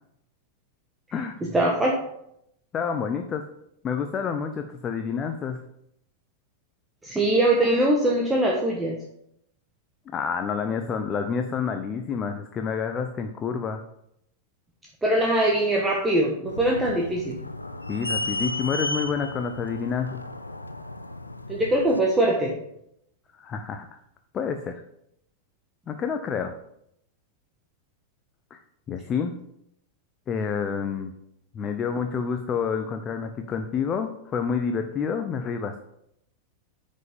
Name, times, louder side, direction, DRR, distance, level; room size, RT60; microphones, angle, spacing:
voice 1, 1.5-1.9 7.0-8.9 15.0-17.4 21.5-22.5, right 1 dB, 10° right, -2 dB, 1.5 m, -22 dB
voice 2, 2.7-3.4 3.8-5.6 10.1-13.8 17.9-20.2 23.3-23.9 24.3-24.8 25.9-26.5 28.5-28.6 28.9-29.3 30.3-31.1 31.5-35.8, left 6 dB, 25° left, 6 dB, 0.8 m, -28 dB
sound 1, 16.5-22.0, left 2 dB, 85° left, 0.6 m, -34 dB
9.4 x 5.4 x 5.4 m, 0.77 s
figure-of-eight pair, 90°, 0 cm